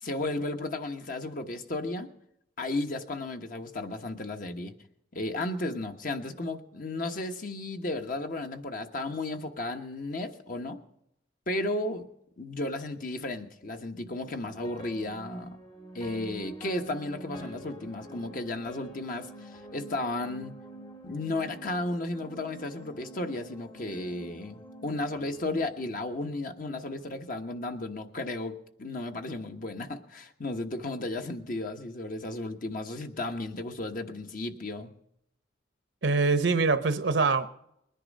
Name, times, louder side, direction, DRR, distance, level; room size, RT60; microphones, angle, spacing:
voice 1, 0.0-2.1 2.6-4.7 5.1-10.8 11.5-12.1 12.4-15.6 15.9-20.5 21.0-34.9, left 2 dB, 45° left, 5 dB, 1.2 m, -34 dB
sound 1, 14.3-26.6, right 1 dB, 30° left, 1.5 m, -46 dB
voice 2, 36.0-37.5, right 4 dB, 65° right, 11 dB, 0.9 m, -24 dB
21.0 x 10.5 x 5.3 m, 0.77 s
head